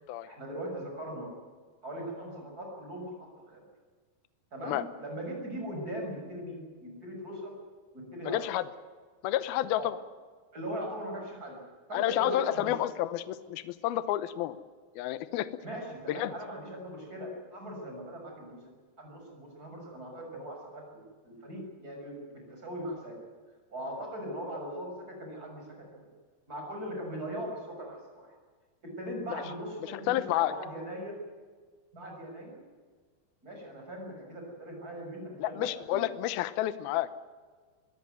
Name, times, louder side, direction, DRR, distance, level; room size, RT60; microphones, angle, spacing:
voice 1, 0.3-1.3 1.8-3.6 4.5-7.5 7.9-8.4 9.7-9.9 10.5-11.6 11.9-12.7 15.6-23.2 23.7-26.1 26.5-28.3 28.8-31.2 31.9-32.6 33.4-36.0, equal, 20° right, 1 dB, 6.8 m, -40 dB
voice 2, 8.2-8.6 9.2-10.0 11.9-14.6 15.0-15.6 16.1-16.3 29.3-29.4 30.1-30.5 35.4-37.1, left 13 dB, 75° left, 13 dB, 2.4 m, -30 dB
22.0 x 16.5 x 9.3 m, 1.5 s
omnidirectional pair, 5.1 m